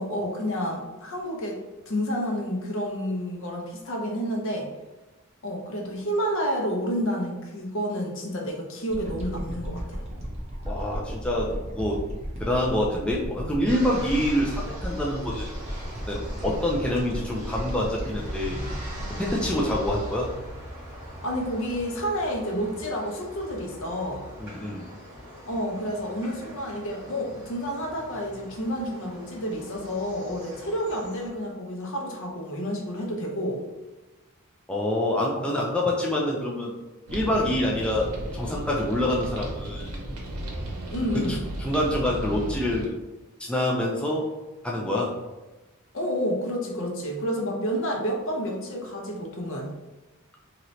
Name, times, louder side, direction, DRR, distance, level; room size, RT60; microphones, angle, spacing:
voice 1, 0.0-1.6 1.9-4.7 5.4-10.0 21.2-24.2 25.5-33.6 35.4-35.5 40.9-41.4 45.9-49.7, equal, 60° left, 1 dB, 0.7 m, -30 dB
sound 1, 8.9-21.2 21.7-21.8, equal, 30° right, 0.7 m, -35 dB
voice 2, 10.7-12.0 12.4-15.5 16.1-18.6 19.2-20.3 24.4-24.9 34.7-36.7 37.1-38.1 38.3-39.9 41.1-42.9 43.4-44.3 44.6-45.1, left 1 dB, 5° left, -3 dB, 0.3 m, -26 dB
sound 2, 13.7-31.3, equal, 10° right, 1.2 m, -42 dB
sound 3, 37.1-42.9, right 1 dB, 90° right, 0.7 m, -34 dB
3.1 x 2.9 x 2.6 m, 1.1 s
head